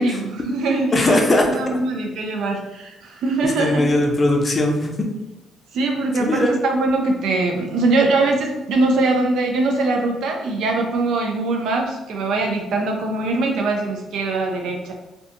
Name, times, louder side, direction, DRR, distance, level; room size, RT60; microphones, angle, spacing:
voice 1, 0.0-1.2 1.5-3.9 5.7-14.9, right 2 dB, 80° right, 2 dB, 0.4 m, -22 dB
voice 2, 0.9-1.8 3.6-5.1 6.2-6.5, left 1 dB, 35° left, 2 dB, 0.5 m, -19 dB
2.5 x 2.3 x 2.5 m, 0.97 s
cardioid pair, 90°, 0 cm